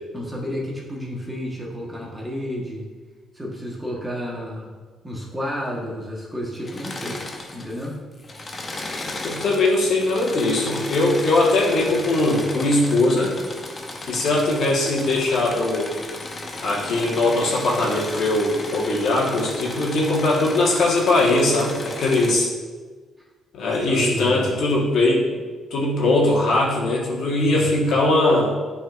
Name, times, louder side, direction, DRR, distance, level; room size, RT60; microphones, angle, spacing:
voice 1, 0.1-2.9 3.3-4.7 5.0-7.2 7.5-8.0 23.9-24.5 27.4-28.0, equal, 10° right, -3 dB, 1.4 m, -31 dB
Engine / Mechanisms, 6.6-7.9 8.2-22.3, left 2 dB, 30° left, 0.8 m, -34 dB
voice 2, 9.2-13.3 14.1-15.9 16.6-22.5 23.5-25.4 25.7-28.5, left 2 dB, 70° left, -4 dB, 1.6 m, -20 dB
9.0 x 4.2 x 2.6 m, 1.4 s
cardioid pair, 90°, 0 cm